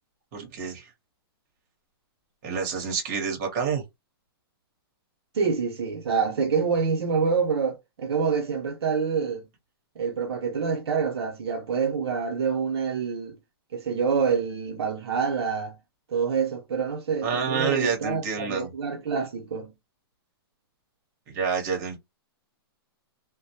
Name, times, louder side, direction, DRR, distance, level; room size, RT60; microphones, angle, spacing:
voice 1, 0.3-0.9 2.4-3.8 17.2-18.7 21.3-22.0, right 6 dB, 40° right, 1.0 m, -28 dB
voice 2, 5.3-9.4 10.0-13.4 13.7-15.8 16.1-19.7, right 5 dB, 85° right, 0.8 m, -26 dB
2.2 x 2.1 x 2.8 m
hypercardioid pair, 155°, 13 cm